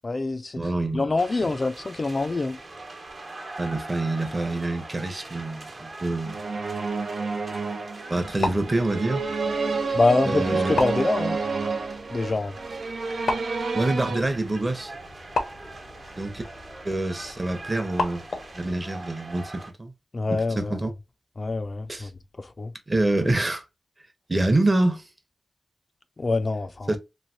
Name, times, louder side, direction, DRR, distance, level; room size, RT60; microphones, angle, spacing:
voice 1, 0.0-0.6 0.9-2.6 9.9-11.4 12.1-12.5 20.1-20.8 21.4-22.1 22.4-22.7 26.2-26.9, left 3 dB, 40° left, 0.4 m, -25 dB
voice 2, 0.6-1.1 1.4-1.5 3.6-6.4 8.1-9.2 10.2-10.8 13.7-14.9 16.2-16.4 16.8-18.2 18.5-19.9 20.3-20.9 21.9-22.1 22.9-23.6 24.3-25.0 26.9-27.0, right 2 dB, 30° right, 0.8 m, -26 dB
sound 1, 1.2-19.7, right 2 dB, 60° right, 1.0 m, -43 dB
sound 2, 6.3-14.2, right 4 dB, 75° right, 0.6 m, -29 dB
sound 3, 8.1-18.7, left 3 dB, 85° left, 0.7 m, -35 dB
3.1 x 2.7 x 2.6 m
wide cardioid pair, 85°, 0 cm